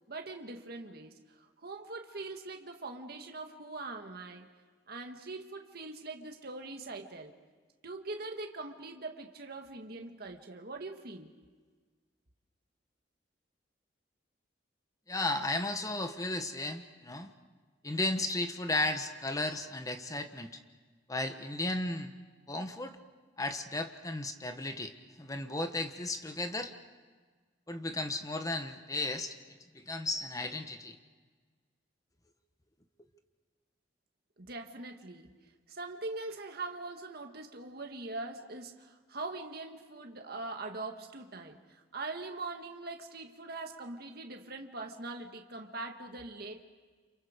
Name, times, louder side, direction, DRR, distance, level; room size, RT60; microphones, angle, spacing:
voice 1, 0.1-4.5 4.9-7.3 7.8-11.3 34.4-35.3 35.7-46.6, right 3 dB, 55° right, 4 dB, 1.8 m, -42 dB
voice 2, 15.1-17.3 17.8-20.6 21.1-22.1 22.5-23.0 23.4-24.9 25.2-26.7 27.7-29.4 29.7-31.0, left 2 dB, 20° left, 7 dB, 1.2 m, -34 dB
30.0 x 28.0 x 5.2 m, 1.5 s
head